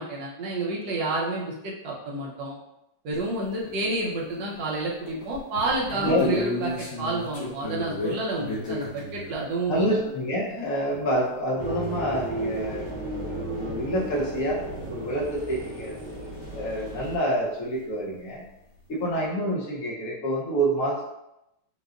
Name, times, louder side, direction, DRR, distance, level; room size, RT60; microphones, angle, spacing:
voice 1, 0.0-2.5 3.0-10.0 10.6-10.7, right 2 dB, 70° right, -4 dB, 1.5 m, -29 dB
sound 1, 3.1-3.2 3.6-4.7 5.1-9.4 12.0-12.1 12.3-12.4 13.4-13.5 14.1-14.2 17.8-17.9 18.0-18.5, left 2 dB, 80° left, 2.0 m, -33 dB
voice 2, 6.0-6.4 9.7-12.9 13.3-14.6 14.9-15.9 16.5-18.5 18.9-21.0, equal, 55° left, -4 dB, 1.2 m, -27 dB
sound 2, 11.6-17.2, right 1 dB, 30° right, 1.1 m, -34 dB
6.7 x 2.3 x 2.5 m, 0.88 s
omnidirectional pair, 2.1 m